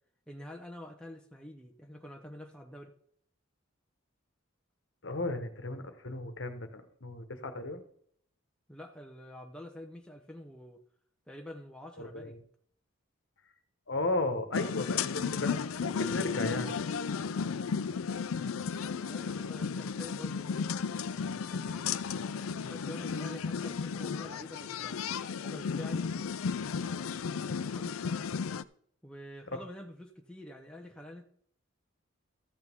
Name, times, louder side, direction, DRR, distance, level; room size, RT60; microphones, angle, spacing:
voice 1, 0.3-2.9 8.7-10.8 11.3-12.4 19.1-20.8 21.5-25.0 25.4-26.1 27.6-27.9 29.0-31.3, left 1 dB, 5° left, 2 dB, 0.8 m, -47 dB
voice 2, 5.0-7.8 12.0-12.4 13.9-16.7 29.5-29.6, left 2 dB, 60° left, 7 dB, 1.3 m, -35 dB
sound 1, 14.5-28.6, left 6 dB, 85° left, 0.5 m, -34 dB
13.5 x 8.8 x 3.6 m, 0.63 s
head